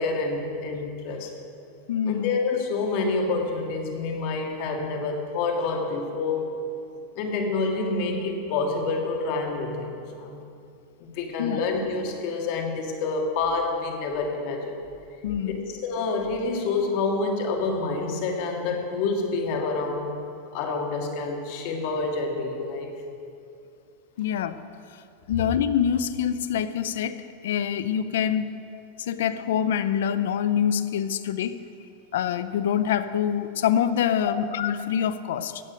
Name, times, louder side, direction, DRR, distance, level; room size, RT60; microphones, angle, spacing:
voice 1, 0.0-1.3 2.0-6.5 7.2-10.4 11.0-14.8 15.4-20.1 20.5-23.0 34.2-34.3, left 3 dB, 55° left, 2 dB, 1.9 m, -28 dB
voice 2, 1.9-2.3 11.4-11.6 15.2-15.7 24.2-24.6 25.3-28.5 29.0-31.7 32.1-35.6, left 9 dB, 80° left, 14 dB, 0.6 m, -25 dB
15.0 x 8.6 x 5.2 m, 2.5 s
supercardioid pair, 145°, 0 cm